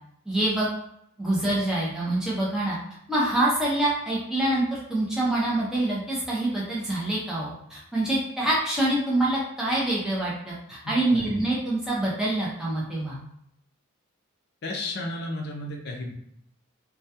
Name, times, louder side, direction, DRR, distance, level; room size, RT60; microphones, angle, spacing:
voice 1, 0.3-0.7 1.2-2.8 3.1-13.2, right 1 dB, 5° right, -7 dB, 0.4 m, -26 dB
voice 2, 10.8-11.5 14.6-16.1, left 1 dB, 50° left, 0 dB, 0.5 m, -33 dB
2.2 x 2.1 x 2.7 m, 0.73 s
head